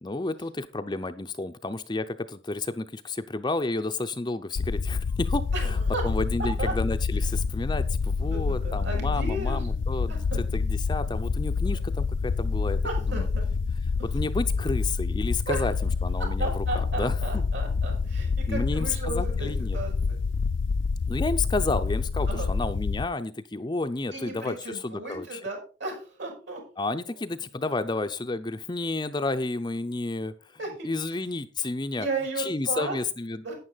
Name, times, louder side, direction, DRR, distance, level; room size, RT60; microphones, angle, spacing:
voice 1, 0.0-5.8 6.0-12.8 13.1-13.3 14.1-15.7 16.0-17.4 18.5-19.8 21.1-25.4 26.8-30.6 30.8-32.1 32.4-33.4, left 2 dB, 20° left, 8 dB, 0.5 m, -31 dB
sound 1, 4.6-23.1, left 4 dB, 70° left, 0.4 m, -27 dB
voice 2, 5.5-6.0 6.6-6.7 8.2-9.6 10.1-10.4 11.7-11.8 12.8-13.5 14.0-14.1 15.5-15.7 16.4-20.2 22.3-22.5 24.1-26.6 30.6-30.9 31.9-33.0 33.4-33.6, right 2 dB, 65° right, 2 dB, 5.9 m, -34 dB
11.0 x 9.6 x 4.0 m, 0.36 s
head